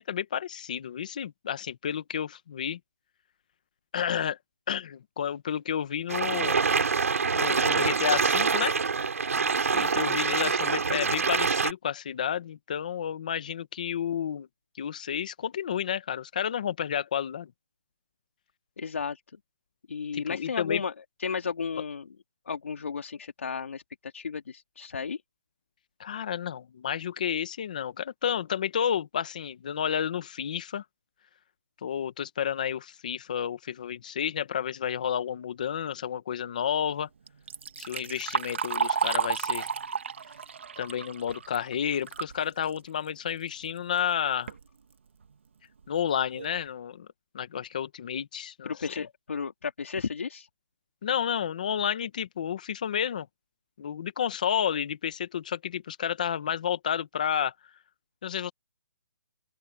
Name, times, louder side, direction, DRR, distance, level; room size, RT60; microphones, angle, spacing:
voice 1, 0.0-2.8 3.9-4.4 4.7-6.6 7.3-8.8 9.7-14.5 14.8-17.5 20.1-20.8 26.0-30.8 31.8-37.1 37.8-39.7 40.8-44.5 45.9-47.1 47.3-49.1 51.0-53.3 53.8-57.5 58.2-58.5, left 8 dB, 35° left, 1.8 m, -31 dB
sound 1, 6.1-11.7, right 5 dB, 80° right, 5.6 m, -25 dB
voice 2, 18.8-19.2 19.9-20.9 21.2-22.1 22.5-25.2 48.6-50.5, left 5 dB, 65° left, 2.5 m, -33 dB
Liquid, 37.3-42.4 42.8-42.9 43.8-43.9 44.3-44.6 45.2-45.3 45.8-45.9 46.3-46.6, right 6 dB, 55° right, 1.9 m, -32 dB
open air
hypercardioid pair, 180°, 8 cm